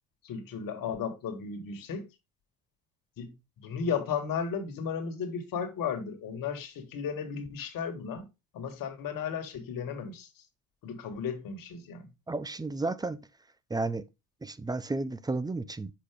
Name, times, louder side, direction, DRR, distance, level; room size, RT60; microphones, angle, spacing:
voice 1, 0.2-2.0 3.2-8.3 8.5-10.4 10.8-12.1, left 6 dB, 55° left, 1.7 m, -35 dB
voice 2, 12.3-13.2 13.7-14.0 14.4-15.9, right 3 dB, 10° right, 0.5 m, -32 dB
6.0 x 4.9 x 3.5 m
hypercardioid pair, 70°, 40 cm